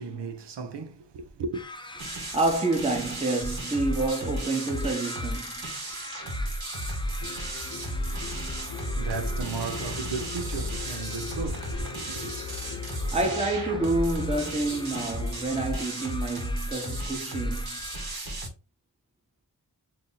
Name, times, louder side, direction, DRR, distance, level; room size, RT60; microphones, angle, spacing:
voice 1, 0.0-1.7 8.3-12.3, right 4 dB, 90° right, 0.5 m, -36 dB
sound 1, 1.5-18.2, left 2 dB, 10° left, 0.4 m, -44 dB
sound 2, 2.0-18.5, right 1 dB, 65° right, 1.1 m, -34 dB
voice 2, 2.1-5.6 13.1-17.8, right 2 dB, 15° right, 0.8 m, -28 dB
sound 3, 7.2-15.7, left 5 dB, 75° left, 0.8 m, -39 dB
2.6 x 2.6 x 3.8 m
wide cardioid pair, 50°, 41 cm